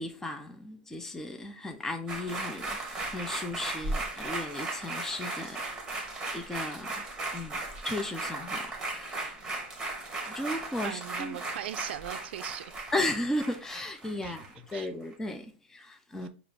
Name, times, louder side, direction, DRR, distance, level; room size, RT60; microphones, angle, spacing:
voice 1, 0.0-6.1 6.3-7.0 7.3-9.4 10.3-11.4 12.9-16.3, left 1 dB, 10° left, 0.5 m, -35 dB
sound 1, 2.1-14.8 15.1-15.2, right 2 dB, 10° right, 1.4 m, -37 dB
voice 2, 10.8-12.7 14.2-14.4 14.7-14.9, right 11 dB, 75° right, 0.4 m, -39 dB
4.9 x 2.5 x 3.5 m
hypercardioid pair, 125°, 6 cm